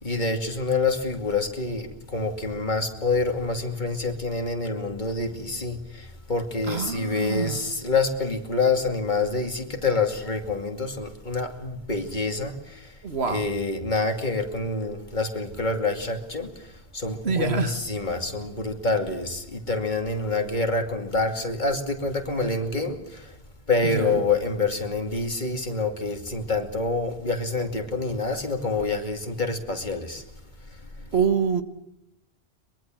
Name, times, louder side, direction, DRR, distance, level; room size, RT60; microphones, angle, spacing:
voice 1, 0.0-5.8 6.3-12.5 13.3-16.5 16.9-23.0 23.7-30.2, left 3 dB, 45° left, 2.7 m, -27 dB
voice 2, 6.7-7.6 13.0-13.5 17.2-17.8 23.8-24.2 31.1-31.6, right 6 dB, 80° right, 1.8 m, -26 dB
23.0 x 22.5 x 7.7 m
omnidirectional pair, 1.1 m